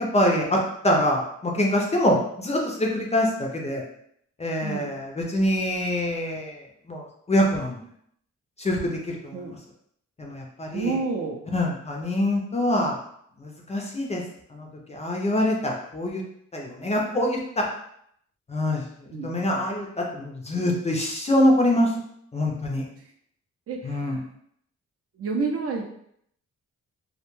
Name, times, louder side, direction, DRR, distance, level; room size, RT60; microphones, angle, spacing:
voice 1, 0.0-3.8 4.4-7.8 8.6-9.6 10.2-11.0 11.5-13.0 13.4-14.2 14.5-16.2 16.5-17.7 18.5-21.9 22.3-22.9 23.8-24.2, left 1 dB, 20° left, -1 dB, 0.4 m, -25 dB
voice 2, 4.6-4.9 9.3-9.5 10.7-11.4 19.1-19.3 23.7-24.2 25.1-25.8, right 4 dB, 50° right, 1 dB, 0.5 m, -29 dB
2.2 x 2.1 x 3.0 m, 0.70 s
cardioid pair, 105°, 30 cm